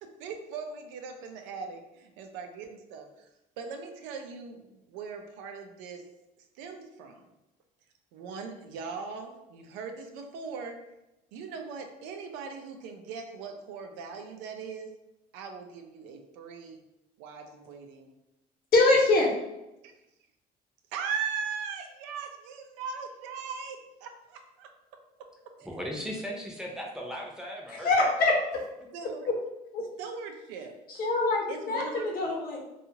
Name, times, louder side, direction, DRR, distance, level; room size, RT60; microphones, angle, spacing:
voice 1, 0.0-3.3 3.6-6.0 6.4-7.3 8.1-10.8 11.3-14.9 15.3-16.8 17.2-18.1 19.8-19.9 20.9-24.7 25.6-25.7 28.9-29.3 30.0-30.7 31.5-32.1, right 5 dB, 85° right, 5 dB, 0.5 m, -39 dB
voice 2, 18.7-19.3 27.8-28.3 29.3-29.4 29.7-29.9 30.9-32.6, left 2 dB, 55° left, -1 dB, 0.9 m, -24 dB
voice 3, 25.6-28.1, equal, 5° right, -2 dB, 0.7 m, -37 dB
2.7 x 2.3 x 2.8 m, 0.94 s
supercardioid pair, 100°, 18 cm